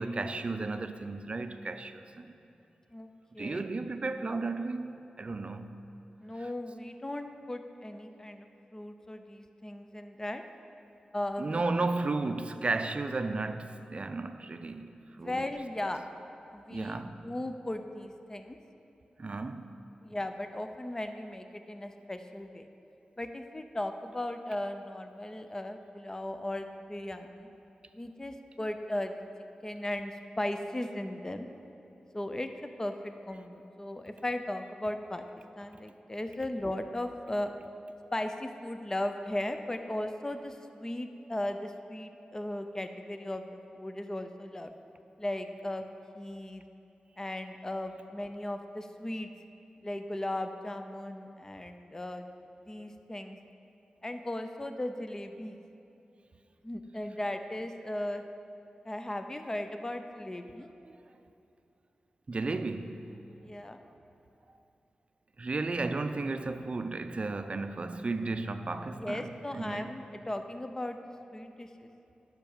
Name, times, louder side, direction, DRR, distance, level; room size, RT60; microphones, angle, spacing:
voice 1, 0.0-2.4 3.4-5.8 6.4-6.5 11.4-15.5 16.7-17.3 19.2-19.8 60.6-61.0 62.3-63.1 64.5-64.6 65.4-70.0, right 3 dB, 45° right, 0.5 m, -34 dB
voice 2, 2.9-3.6 6.2-10.4 11.1-11.6 15.2-16.0 16.5-18.6 20.0-22.7 23.2-27.5 27.9-29.2 29.6-31.5 32.1-35.2 35.6-37.5 38.1-44.7 45.2-45.8 46.2-46.6 47.2-49.3 49.8-52.2 52.7-53.4 54.0-55.6 56.6-58.2 58.8-60.7 63.4-63.8 68.9-71.0 71.3-71.9, left 1 dB, 20° left, 0.6 m, -37 dB
10.5 x 5.9 x 7.2 m
cardioid pair, 65°, 3 cm